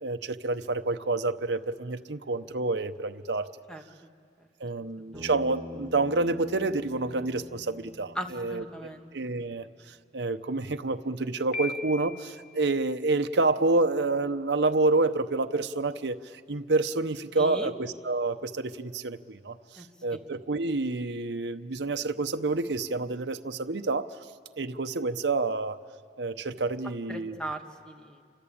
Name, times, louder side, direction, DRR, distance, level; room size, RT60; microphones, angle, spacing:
voice 1, 0.0-3.5 4.6-8.6 9.1-24.1 24.6-25.8 26.2-27.4, right 3 dB, 75° right, 8 dB, 0.9 m, -28 dB
voice 2, 4.8-5.3 8.1-9.1 17.4-17.7 19.8-20.2 27.1-28.2, right 1 dB, 5° left, 4 dB, 1.6 m, -39 dB
Bass guitar, 5.1-9.5, left 1 dB, 20° right, 4.0 m, -45 dB
Piano, 11.5-12.5, left 3 dB, 55° left, 2.1 m, -37 dB
29.0 x 23.5 x 8.7 m, 2.2 s
head